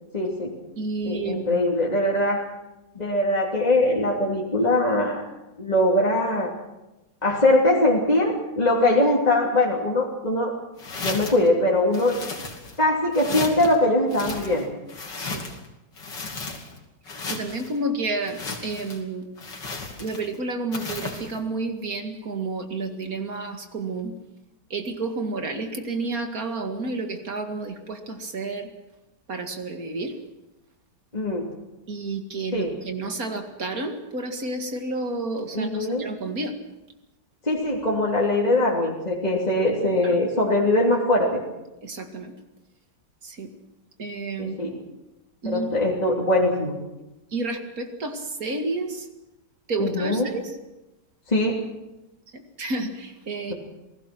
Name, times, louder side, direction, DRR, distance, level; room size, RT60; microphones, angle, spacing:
voice 1, 0.1-0.5 1.0-2.4 2.9-5.2 5.6-6.5 7.2-10.5 11.0-12.2 12.8-14.6 31.1-31.5 32.5-32.7 35.5-36.1 37.4-41.4 44.4-44.7 45.4-46.7 49.8-50.3 51.3-51.6, left 1 dB, 20° left, -3 dB, 3.1 m, -22 dB
voice 2, 0.8-1.6 15.2-15.4 17.3-19.3 20.0-24.1 24.7-28.7 29.3-30.2 31.9-36.5 40.0-40.2 41.8-42.3 43.2-43.5 44.0-44.5 45.4-45.7 47.3-49.1 49.7-50.6 52.3-53.5, right 3 dB, 55° right, 5 dB, 2.5 m, -30 dB
sound 1, 10.8-11.5 11.9-12.8 13.1-13.7 14.1-15.7 16.0-16.8 17.1-17.7 18.2-19.0 19.4-20.3 20.7-21.3, left 3 dB, 90° left, 3.4 m, -34 dB
28.0 x 18.5 x 6.1 m, 0.99 s
omnidirectional pair, 1.9 m